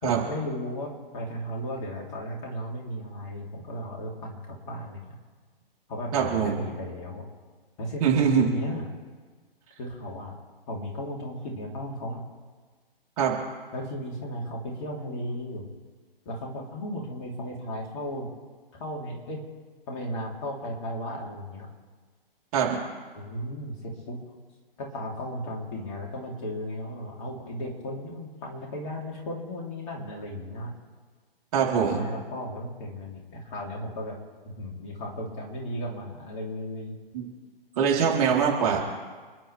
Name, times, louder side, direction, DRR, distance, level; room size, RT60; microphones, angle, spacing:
voice 1, 0.0-5.1 5.9-7.2 7.8-8.0 8.4-8.9 9.8-10.3 10.7-12.2 13.7-15.6 16.2-18.3 18.8-19.4 19.9-21.7 23.1-24.2 24.8-30.7 31.8-34.2 34.4-36.9 38.7-38.8, equal, 30° left, -1 dB, 3.4 m, -35 dB
voice 2, 6.1-6.5 8.0-8.5 13.2-13.4 22.5-22.8 31.5-32.0 37.1-37.2 37.8-38.8, right 7 dB, 40° right, -2 dB, 4.0 m, -23 dB
29.0 x 11.0 x 3.5 m, 1.4 s
figure-of-eight pair, 125°, 30 cm